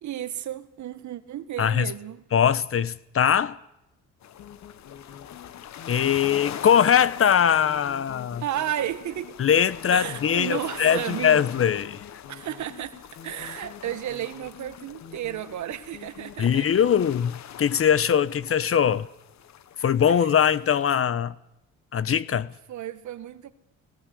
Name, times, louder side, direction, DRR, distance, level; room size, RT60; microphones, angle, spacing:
voice 1, 0.0-2.2 8.4-9.4 9.9-11.4 12.3-16.8 22.7-23.5, right 11 dB, 70° right, 1.8 m, -33 dB
voice 2, 1.6-1.9 2.3-3.6 5.9-8.4 9.4-12.0 16.4-19.1 19.8-21.3 21.9-22.5, left 8 dB, 45° left, 1.1 m, -21 dB
sound 1, 4.2-20.9, left 10 dB, 65° left, 1.3 m, -43 dB
sound 2, 4.4-17.3, left 8 dB, 80° left, 3.3 m, -47 dB
20.5 x 17.5 x 7.9 m
cardioid pair, 90°, 30 cm